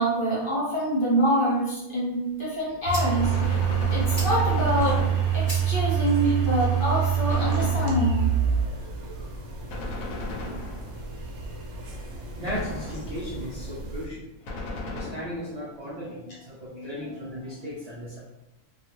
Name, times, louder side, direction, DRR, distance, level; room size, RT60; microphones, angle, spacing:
voice 1, 0.0-3.6 3.9-5.0 5.3-8.3 16.7-16.9, right 1 dB, 45° left, -7 dB, 1.0 m, -26 dB
sound 1, 2.3-8.3, equal, 20° left, 0.8 m, -44 dB
sound 2, 2.9-14.0, right 7 dB, 65° right, 0.9 m, -27 dB
Gunshot gunfire, 3.2-5.7 7.3-8.3 9.7-11.1 12.4-13.3 14.5-15.6, left 2 dB, 85° left, 1.0 m, -35 dB
voice 2, 12.4-14.2 14.8-18.2, equal, 50° right, -7 dB, 0.4 m, -36 dB
2.4 x 2.3 x 2.9 m, 0.93 s
omnidirectional pair, 1.4 m